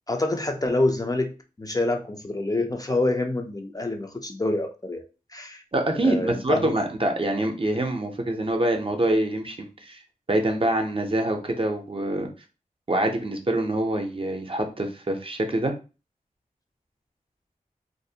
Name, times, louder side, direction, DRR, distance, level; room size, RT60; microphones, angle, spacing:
voice 1, 0.1-5.0 5.3-5.6 6.0-6.7, left 2 dB, 25° left, 4 dB, 0.4 m, -26 dB
voice 2, 5.7-10.0 10.3-12.3 12.9-15.7, right 1 dB, 40° right, 4 dB, 0.5 m, -25 dB
2.5 x 2.0 x 2.7 m, 0.32 s
cardioid pair, 45°, 15 cm